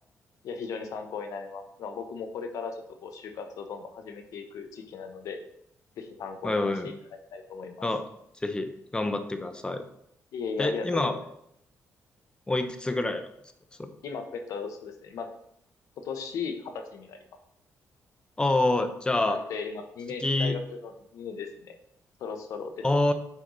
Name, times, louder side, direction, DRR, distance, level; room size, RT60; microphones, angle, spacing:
voice 1, 0.4-5.4 6.0-6.9 7.3-7.8 10.3-11.3 14.0-15.3 16.0-17.2 19.3-21.8 22.2-22.8, left 5 dB, 80° left, 6 dB, 1.1 m, -37 dB
voice 2, 6.4-6.9 7.8-8.0 8.4-9.8 10.6-11.1 12.5-13.3 13.8-13.9 18.4-19.4 20.2-20.6 22.8-23.1, left 2 dB, 15° left, 8 dB, 0.9 m, -26 dB
8.6 x 4.7 x 4.0 m, 0.75 s
cardioid pair, 95°, 6 cm